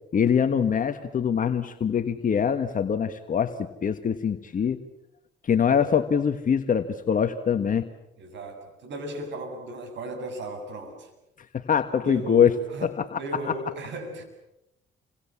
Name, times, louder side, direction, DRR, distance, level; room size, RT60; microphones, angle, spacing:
voice 1, 0.1-4.8 5.4-7.9 11.4-12.5 12.8-13.2, left 7 dB, 45° left, 8 dB, 1.6 m, -24 dB
voice 2, 8.2-11.1 12.0-14.2, right 1 dB, 65° right, 7 dB, 7.6 m, -36 dB
28.5 x 26.0 x 7.3 m, 0.86 s
cardioid pair, 85°, 20 cm